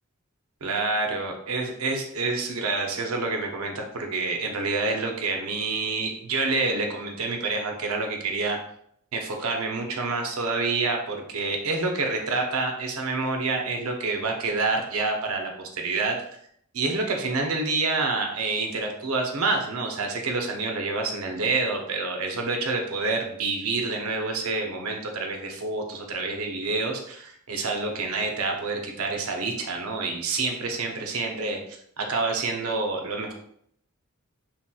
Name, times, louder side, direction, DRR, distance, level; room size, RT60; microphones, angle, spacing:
voice 1, 0.6-8.6 9.1-16.1 16.7-31.6 32.0-33.3, right 3 dB, 80° right, 2 dB, 0.6 m, -27 dB
3.1 x 2.9 x 2.3 m, 0.68 s
head